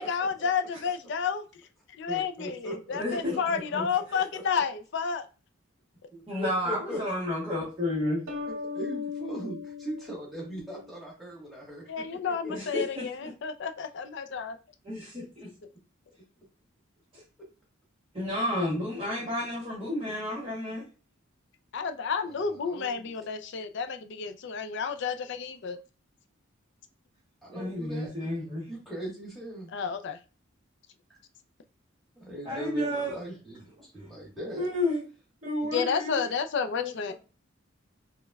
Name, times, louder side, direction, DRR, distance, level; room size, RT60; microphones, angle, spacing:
voice 1, 0.0-1.4 2.0-5.3 11.9-14.6 21.7-25.8 29.7-30.2 35.7-37.1, left 6 dB, 55° left, 0.4 m, -31 dB
voice 2, 2.1-4.4 6.1-7.0 8.5-12.5 22.3-23.3 27.4-28.1 28.7-29.7 32.2-34.7, equal, ahead, 1.3 m, -40 dB
voice 3, 3.0-3.9 6.3-8.2 12.5-13.3 14.8-15.5 18.1-20.8 27.5-28.7 32.4-33.2 34.6-35.0 35.4-36.2 36.7-37.1, left 1 dB, 25° right, 1.0 m, -31 dB
sound 1, 8.3-10.9, left 5 dB, 80° right, 0.8 m, -38 dB
5.0 x 2.2 x 2.3 m
head